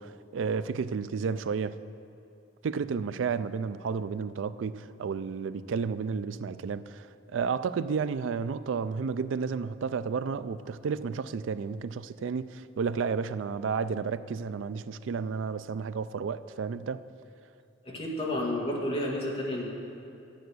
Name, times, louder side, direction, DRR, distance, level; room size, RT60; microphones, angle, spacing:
voice 1, 0.0-1.8 2.6-17.0, right 5 dB, 85° right, 0.4 m, -32 dB
voice 2, 17.9-19.7, left 1 dB, 30° left, 1.9 m, -31 dB
11.5 x 8.1 x 6.3 m
head